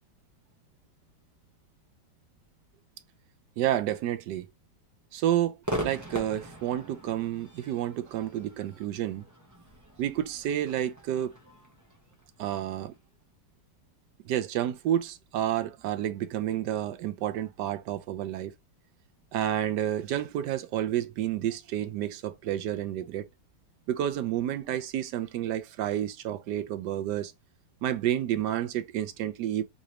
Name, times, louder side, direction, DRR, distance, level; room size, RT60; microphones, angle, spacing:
voice 1, 3.6-4.5 5.1-5.6 5.8-9.2 10.0-11.4 12.4-12.9 14.2-18.5 19.3-23.3 23.9-27.3 27.8-29.6, right 11 dB, 80° right, 1.2 m, -30 dB
Crowd / Fireworks, 5.6-13.0, right 1 dB, 20° right, 0.5 m, -40 dB
3.9 x 2.6 x 3.0 m
omnidirectional pair, 1.8 m